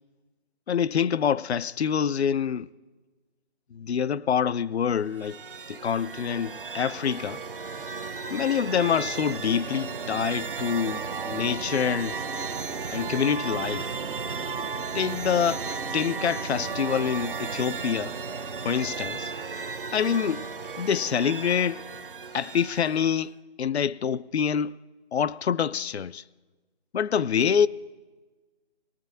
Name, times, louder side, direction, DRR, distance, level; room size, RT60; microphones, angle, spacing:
voice 1, 0.7-2.7 3.7-5.4 5.7-7.4 8.3-12.2 12.9-14.0 14.9-18.2 18.6-19.3 19.9-20.5 20.8-21.8 22.3-24.8 25.1-26.2 26.9-27.7, left 7 dB, 75° left, 0.5 m, -26 dB
sound 1, 5.0-23.2, right 5 dB, 55° right, 0.7 m, -34 dB
21.0 x 12.0 x 2.6 m
figure-of-eight pair, 160°, 33 cm